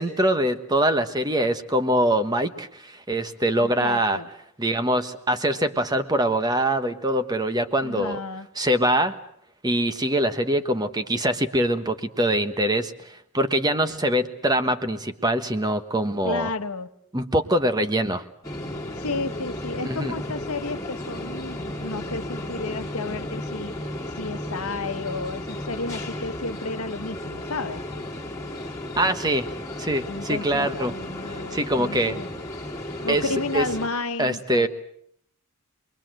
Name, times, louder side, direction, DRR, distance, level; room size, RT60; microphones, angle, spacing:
voice 1, 0.0-4.2 4.6-8.2 8.6-9.1 9.6-16.5 17.1-18.2 19.8-20.1 29.0-29.5 29.8-30.9 31.5-32.2 33.1-33.2 33.5-33.7 34.2-34.7, right 1 dB, 20° right, 1.3 m, -23 dB
voice 2, 3.6-4.3 7.8-8.5 16.2-16.9 18.9-27.8 30.1-32.3 33.0-34.7, left 3 dB, 75° left, 1.2 m, -32 dB
sound 1, 18.4-33.9, left 1 dB, 15° left, 2.6 m, -34 dB
27.0 x 22.0 x 7.7 m
head